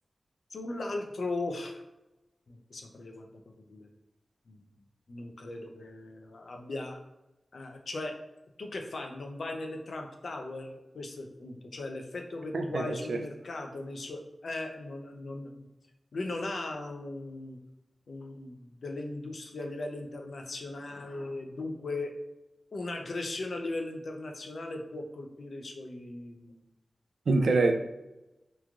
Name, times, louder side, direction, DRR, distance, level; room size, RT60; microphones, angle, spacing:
voice 1, 0.5-1.8 2.5-3.3 3.7-3.9 4.5-4.7 5.1-7.0 7.5-8.2 8.6-15.7 16.1-17.6 18.1-22.1 22.7-26.6, left 2 dB, 75° left, 3 dB, 0.4 m, -38 dB
voice 2, 12.5-13.2 27.3-27.7, right 3 dB, 80° right, 5 dB, 0.3 m, -25 dB
3.0 x 2.4 x 2.3 m, 0.95 s
wide cardioid pair, 65°, 0 cm